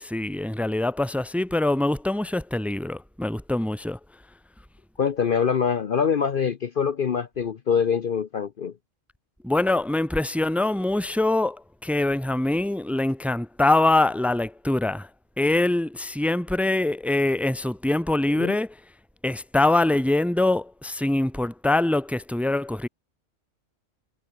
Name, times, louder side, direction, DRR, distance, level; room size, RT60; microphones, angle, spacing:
voice 1, 0.0-4.0 9.4-15.1 15.4-18.7 19.2-22.9, left 2 dB, ahead, 1.1 m, -24 dB
voice 2, 5.0-8.7 18.4-18.6, left 6 dB, 50° left, 0.9 m, -24 dB
omnidirectional pair, 1.3 m